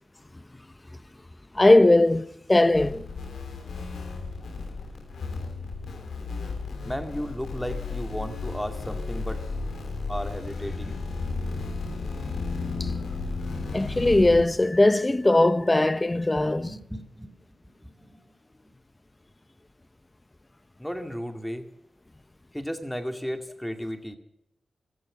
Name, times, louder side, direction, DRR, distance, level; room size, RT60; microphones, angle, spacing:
voice 1, 1.5-3.1 12.8-12.9 13.7-16.7, left 2 dB, 25° left, 0.7 m, -19 dB
sound 1, 2.7-14.4, left 3 dB, 85° left, 2.9 m, -33 dB
voice 2, 6.8-9.4 10.1-11.0 13.5-13.6 16.4-17.3 17.8-18.2 20.8-21.7 22.5-24.2, equal, 5° left, 2.2 m, -34 dB
15.0 x 13.5 x 6.6 m
cardioid pair, 50°, 0 cm